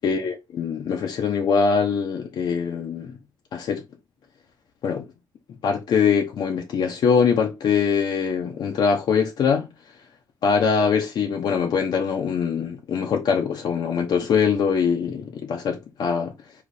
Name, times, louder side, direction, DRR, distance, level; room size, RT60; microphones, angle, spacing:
voice 1, 0.0-3.2 3.5-3.8 4.8-5.1 5.6-9.7 10.4-16.3, left 6 dB, 70° left, 0.8 m, -23 dB
5.0 x 2.5 x 4.1 m
wide cardioid pair, 145°, 8 cm